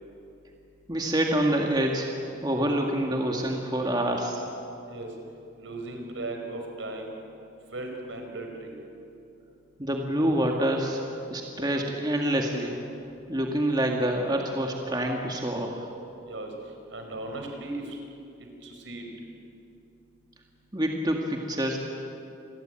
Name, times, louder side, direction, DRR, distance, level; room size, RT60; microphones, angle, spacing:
voice 1, 0.9-2.1 2.4-4.4 9.8-11.0 11.3-12.8 13.3-15.9 20.7-21.8, right 1 dB, 20° right, 1 dB, 2.0 m, -26 dB
voice 2, 5.6-7.1 7.7-8.7 16.3-16.5 16.9-18.0 18.6-19.0, right 2 dB, 75° right, 3 dB, 5.0 m, -37 dB
28.0 x 21.0 x 9.1 m, 2.7 s
head